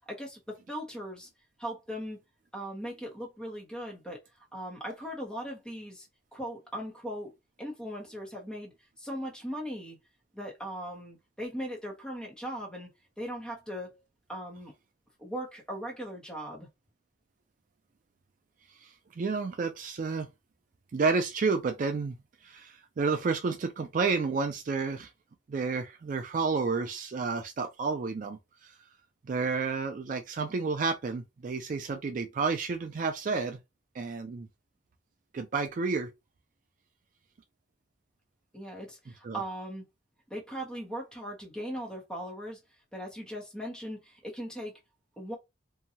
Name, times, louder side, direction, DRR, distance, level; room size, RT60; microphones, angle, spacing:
voice 1, 0.1-1.3 1.6-2.2 2.5-4.2 4.5-6.1 6.3-7.3 7.6-10.0 10.3-12.9 13.2-14.0 14.3-14.7 15.2-16.7 38.5-39.8 40.3-42.6 42.9-44.8 45.2-45.4, equal, 5° left, 0.8 m, -39 dB
voice 2, 18.8-20.3 20.9-25.1 25.5-28.7 29.2-33.6 33.9-34.5 35.3-36.1 39.2-39.4, right 4 dB, 40° right, 0.3 m, -31 dB
2.7 x 2.2 x 2.7 m
head